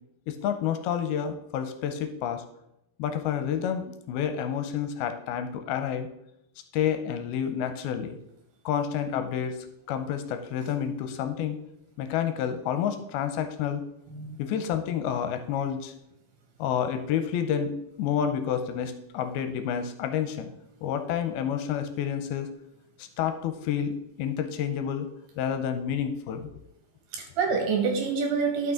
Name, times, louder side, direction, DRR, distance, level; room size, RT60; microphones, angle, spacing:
voice 1, 0.3-2.4 3.0-6.1 6.7-8.2 8.7-9.6 9.9-11.6 12.0-13.8 14.4-15.9 16.6-20.5 20.8-22.5 23.0-25.1 25.4-26.5, left 8 dB, 85° left, 8 dB, 2.5 m, -29 dB
voice 2, 14.1-14.4 27.1-28.7, right 5 dB, 75° right, 1 dB, 3.8 m, -27 dB
12.0 x 6.0 x 3.7 m, 0.84 s
omnidirectional pair, 4.6 m